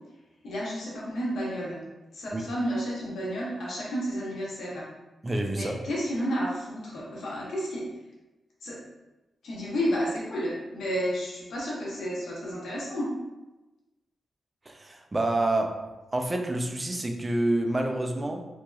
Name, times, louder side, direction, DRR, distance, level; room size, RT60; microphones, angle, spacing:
voice 1, 0.4-1.8 2.1-4.9 5.5-7.9 8.6-8.8 9.4-13.1, equal, 85° left, -5 dB, 0.8 m, -31 dB
voice 2, 5.2-5.8 14.7-15.8 16.1-18.4, right 1 dB, 20° right, 4 dB, 0.3 m, -28 dB
2.9 x 2.7 x 2.3 m, 1.1 s
wide cardioid pair, 140°, 0 cm